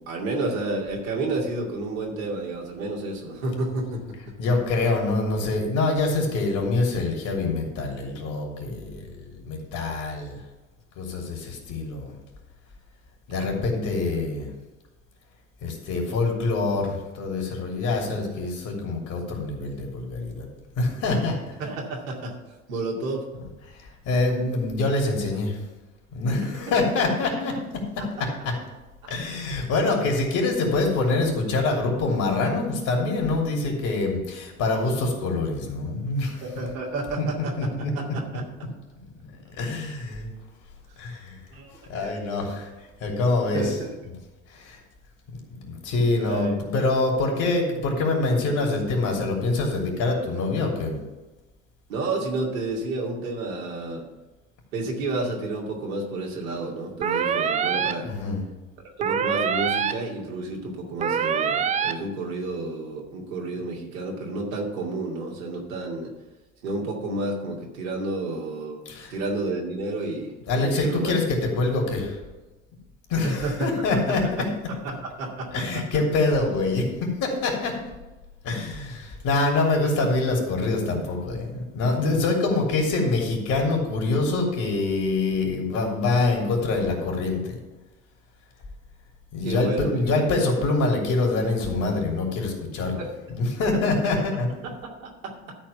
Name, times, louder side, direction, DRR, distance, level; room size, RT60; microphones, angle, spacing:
voice 1, 0.0-4.2 13.3-13.5 21.6-22.3 22.7-23.2 36.4-37.5 37.9-38.4 41.5-41.7 42.0-42.1 43.5-43.9 46.2-46.6 51.9-54.1 54.7-58.1 59.0-66.1 66.6-70.3 70.6-71.1 73.2-73.7 74.7-75.8 89.4-90.1 92.9-93.1 94.6-95.5, right 2 dB, 70° right, -1 dB, 2.5 m, -30 dB
voice 2, 4.4-10.4 11.0-12.1 13.3-14.5 15.6-20.5 20.7-21.6 23.7-25.6 26.1-27.5 28.2-28.3 29.1-36.4 37.2-37.3 37.6-37.9 39.2-39.3 39.6-40.3 41.0-41.4 41.7-42.7 43.0-43.8 44.1-44.2 44.5-44.8 45.5-51.0 58.0-58.4 68.9-69.1 70.5-72.2 73.1-74.4 75.5-77.8 78.4-87.6 89.3-93.0 93.3-94.5, left 3 dB, 45° left, 0 dB, 3.2 m, -25 dB
sound 1, 57.0-57.9 59.0-59.9 61.0-61.9, right 7 dB, 20° right, 0.4 m, -24 dB
13.0 x 4.4 x 7.1 m, 1.1 s
figure-of-eight pair, 75°, 42 cm